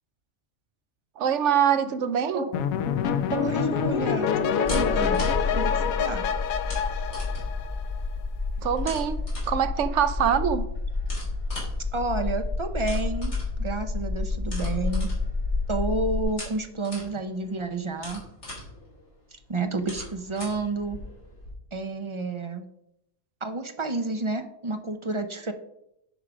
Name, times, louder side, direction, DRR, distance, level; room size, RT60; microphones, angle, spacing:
voice 1, 1.2-2.4 8.6-9.2 9.5-10.7, right 8 dB, 65° right, 11 dB, 0.9 m, -24 dB
sound 1, 2.5-8.0, left 8 dB, 85° left, 1.1 m, -26 dB
voice 2, 3.3-5.2 5.5-6.2 11.9-13.3 13.6-15.1 15.7-18.2 19.3-21.0 21.7-22.7 23.4-25.5, right 2 dB, 35° right, 7 dB, 0.4 m, -30 dB
sound 2, 4.6-21.5, left 1 dB, 55° left, 3.9 m, -42 dB
sound 3, 4.6-16.2, left 3 dB, 15° left, 3.3 m, -30 dB
10.0 x 4.9 x 5.0 m, 0.80 s
omnidirectional pair, 1.4 m